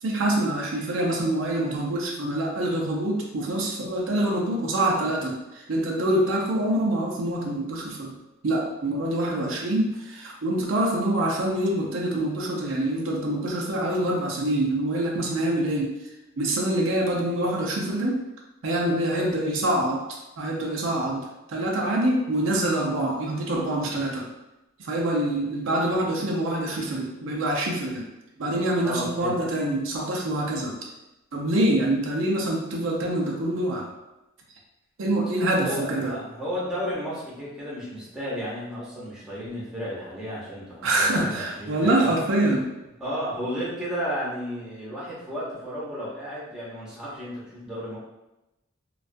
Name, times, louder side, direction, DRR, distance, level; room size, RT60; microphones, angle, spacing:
voice 1, 0.0-8.1 8.4-15.9 16.4-18.2 18.6-24.3 24.8-28.1 28.4-30.8 31.3-33.9 35.0-36.1 40.8-42.7, right 1 dB, 85° right, -1 dB, 0.5 m, -25 dB
voice 2, 28.8-29.4 35.6-42.1 43.0-48.0, equal, 5° right, -8 dB, 0.7 m, -33 dB
2.3 x 2.3 x 2.5 m, 0.95 s
head